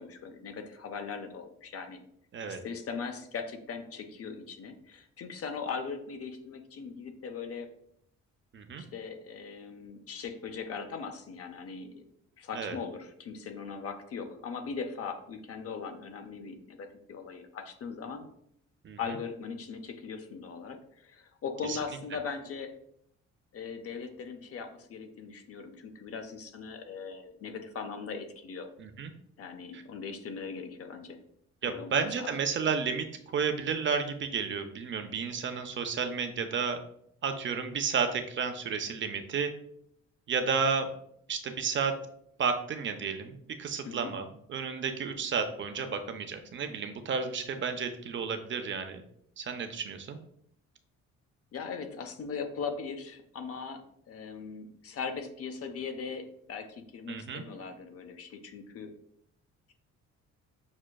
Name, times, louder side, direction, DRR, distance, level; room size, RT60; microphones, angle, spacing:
voice 1, 0.0-2.0 2.5-7.7 8.8-12.0 12.4-18.3 19.0-22.7 23.5-28.7 29.4-31.2 31.6-32.3 43.9-44.1 51.5-58.9, left 5 dB, 50° left, 6 dB, 0.5 m, -39 dB
voice 2, 8.5-8.8 12.5-12.8 18.8-19.0 21.7-21.8 28.8-29.1 29.7-29.8 31.6-36.8 37.2-39.5 40.3-40.9 41.3-41.9 42.4-49.0 49.4-50.2 57.1-57.4, right 5 dB, 40° right, 7 dB, 0.5 m, -32 dB
6.0 x 2.2 x 2.2 m, 0.71 s
cardioid pair, 90°, 30 cm